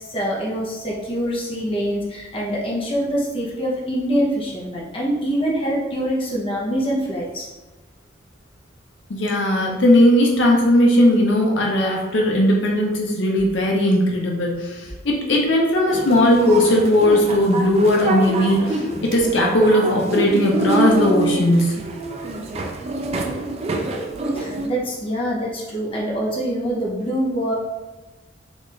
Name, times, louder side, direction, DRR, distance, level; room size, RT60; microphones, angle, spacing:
voice 1, 0.0-7.5 24.3-27.5, equal, 25° left, -4 dB, 0.7 m, -24 dB
voice 2, 9.1-14.8 15.0-21.7, left 1 dB, 70° left, -1 dB, 0.6 m, -17 dB
sound 1, 15.9-24.7, right 3 dB, 30° right, 0.3 m, -26 dB
4.1 x 2.5 x 3.2 m, 1.2 s
head